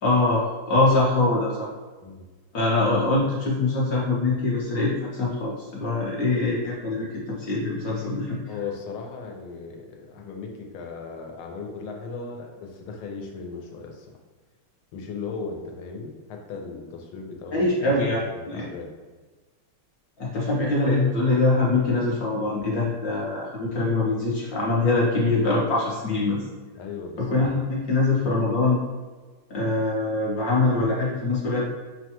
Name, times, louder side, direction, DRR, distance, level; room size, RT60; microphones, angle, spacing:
voice 1, 0.0-1.7 2.5-7.1 7.4-8.4 17.5-18.2 18.5-18.6 20.2-26.4 27.2-28.8 29.5-31.6, left 2 dB, 65° left, -5 dB, 0.9 m, -23 dB
voice 2, 8.5-14.1 14.9-18.9 26.7-27.3, left 4 dB, 85° left, 1 dB, 1.5 m, -37 dB
6.3 x 2.2 x 2.8 m, 1.3 s
omnidirectional pair, 2.2 m